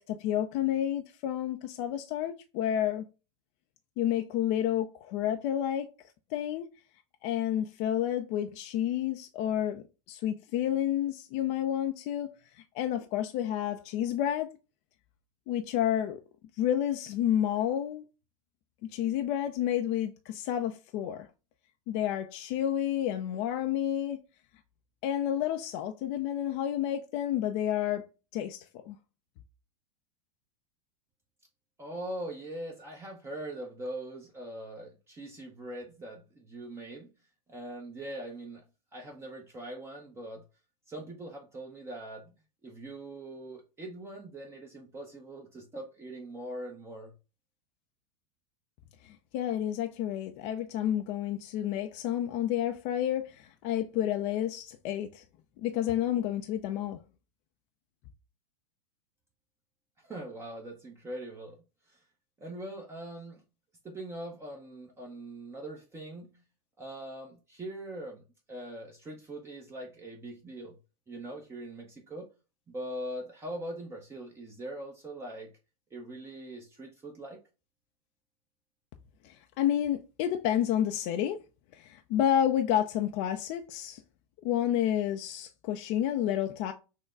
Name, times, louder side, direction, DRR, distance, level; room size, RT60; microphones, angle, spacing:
voice 1, 0.0-3.0 4.0-5.9 6.3-6.7 7.2-12.3 12.6-14.5 15.5-16.2 16.6-18.0 18.8-21.3 21.9-24.2 25.0-28.0 28.3-29.0 49.0-55.2 55.6-57.0 79.2-81.4 81.7-84.0 84.4-86.7, left 11 dB, 45° left, 0.5 m, -30 dB
voice 2, 31.8-37.1 37.5-38.6 38.9-40.4 40.9-42.3 42.6-47.1 60.0-61.6 61.9-62.0 62.4-63.4 63.8-66.4 66.8-68.2 68.5-70.8 71.1-72.3 72.7-75.5 75.9-77.4, right 1 dB, 15° right, 0.8 m, -42 dB
6.4 x 2.2 x 3.7 m
supercardioid pair, 140°, 18 cm